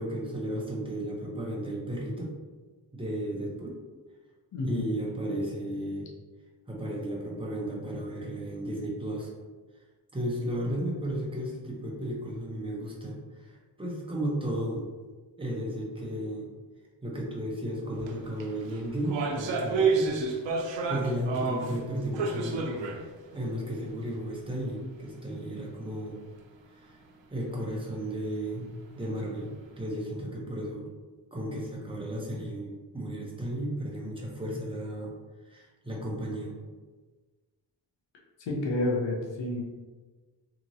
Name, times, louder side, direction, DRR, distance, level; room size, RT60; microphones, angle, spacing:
voice 1, 0.0-2.3 2.9-3.8 4.6-6.1 6.7-9.3 10.1-14.9 15.4-16.5 17.0-20.4 20.9-22.7 23.3-26.2 26.7-27.0 27.3-29.5 29.8-30.9 31.3-35.1 35.4-36.6, right 1 dB, 15° right, -3 dB, 0.5 m, -34 dB
voice 2, 4.5-4.8 38.4-39.6, left 2 dB, 85° left, -1 dB, 0.7 m, -29 dB
sound 1, 18.0-18.1 18.4-21.8 22.1-23.1 23.3-23.4 24.2-24.3, right 4 dB, 85° right, 0.5 m, -29 dB
2.9 x 2.8 x 2.6 m, 1.3 s
wide cardioid pair, 175°, 43 cm